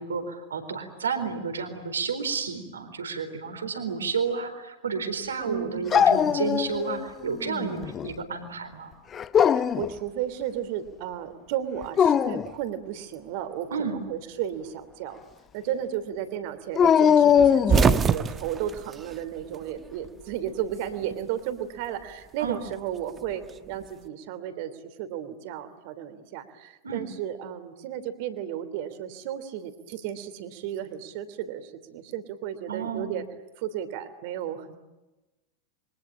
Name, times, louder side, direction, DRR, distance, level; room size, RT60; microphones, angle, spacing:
voice 1, 0.0-8.9 13.7-14.0 22.4-22.6 26.8-27.1 32.7-33.2, right 5 dB, 70° right, 8 dB, 4.2 m, -31 dB
voice 2, 5.5-6.1 9.5-15.2 15.5-33.2 33.6-34.7, right 10 dB, 45° right, 11 dB, 3.0 m, -34 dB
Dog, 5.9-7.1 7.4-8.1 9.1-9.9 11.8-12.5 16.8-18.1, left 8 dB, 25° left, 0.9 m, -21 dB
sound 1, 17.4-19.9 20.2-21.3 22.5-23.9, right 6 dB, 20° right, 1.2 m, -25 dB
27.0 x 24.0 x 8.8 m, 1.1 s
figure-of-eight pair, 90°, 0 cm